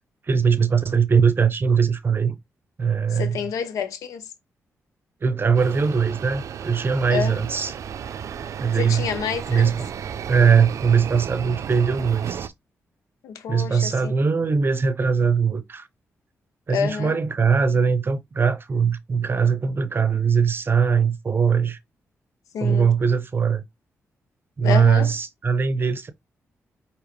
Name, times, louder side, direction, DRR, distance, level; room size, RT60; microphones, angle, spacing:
voice 1, 0.2-2.4 2.8-3.4 5.2-7.8 8.6-9.0 9.5-9.9 10.3-12.5 13.5-15.9 16.7-21.8 22.6-23.6 24.6-26.1, right 6 dB, 40° right, 0.7 m, -21 dB
voice 2, 3.1-4.2 7.1-7.4 8.8-9.7 13.2-14.1 16.7-17.2 22.5-22.9 24.6-25.1, left 7 dB, 90° left, 0.7 m, -28 dB
sound 1, 5.5-12.5, right 8 dB, 70° right, 0.4 m, -34 dB
4.9 x 2.9 x 3.1 m
cardioid pair, 65°, 6 cm